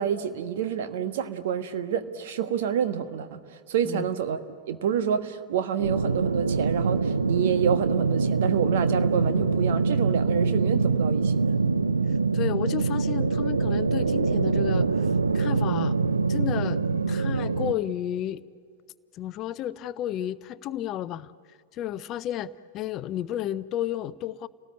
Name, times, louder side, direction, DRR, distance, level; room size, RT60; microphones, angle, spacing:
voice 1, 0.0-3.4 3.7-4.4 4.7-11.5, right 8 dB, 55° right, 9 dB, 1.3 m, -28 dB
sound 1, 5.8-17.7, right 4 dB, 75° right, 0.6 m, -24 dB
voice 2, 12.3-14.9 15.3-16.0 16.3-18.4 19.1-21.3 21.7-24.5, left 12 dB, 35° left, 16 dB, 0.6 m, -32 dB
30.0 x 18.5 x 8.7 m, 2.1 s
figure-of-eight pair, 90°, 0 cm